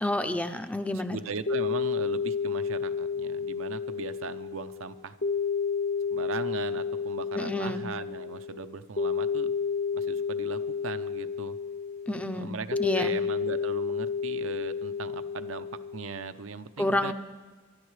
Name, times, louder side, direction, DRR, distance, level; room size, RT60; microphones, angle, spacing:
voice 1, 0.0-1.2 7.3-7.8 12.1-12.5 12.8-13.1 16.8-17.1, left 1 dB, 5° left, 9 dB, 0.5 m, -29 dB
sound 1, 0.9-16.3, left 6 dB, 60° left, 1.0 m, -31 dB
voice 2, 0.9-5.2 6.1-9.5 9.9-11.6 12.3-15.7 15.9-17.1, right 5 dB, 85° right, 9 dB, 0.7 m, -38 dB
24.0 x 12.5 x 3.2 m, 1.3 s
head